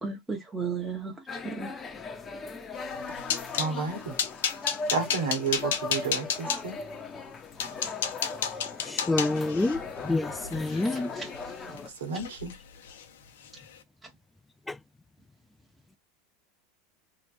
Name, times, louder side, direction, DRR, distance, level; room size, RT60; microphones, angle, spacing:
voice 1, 0.0-1.7 10.7-11.3, right 5 dB, 10° right, 1.1 m, -35 dB
sound 1, 1.3-11.9, left 4 dB, 25° left, 0.9 m, -39 dB
sound 2, 2.8-3.7 4.2-6.6 7.2-7.3 7.6-11.8 12.1-12.6 12.8-13.0 13.4-13.6, left 7 dB, 80° left, 0.9 m, -32 dB
voice 2, 3.6-4.2 4.9-6.8 12.0-12.5, right 5 dB, 85° right, 1.4 m, -31 dB
voice 3, 9.1-9.8 10.0-11.1, left 2 dB, 10° left, 0.3 m, -27 dB
3.2 x 3.0 x 2.6 m
hypercardioid pair, 105°, 0 cm